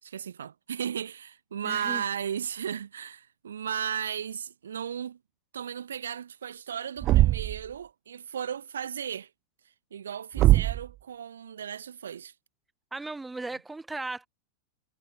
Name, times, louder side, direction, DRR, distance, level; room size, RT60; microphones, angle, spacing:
voice 1, 0.0-5.2 5.5-9.3 9.9-12.3, right 8 dB, 65° right, 2.3 m, -35 dB
voice 2, 1.6-2.0 12.9-14.3, right 3 dB, 10° right, 4.0 m, -36 dB
Thump thud, 7.0-7.7 10.4-10.9, right 15 dB, 35° right, 1.3 m, -21 dB
figure-of-eight pair, 90°, 0 cm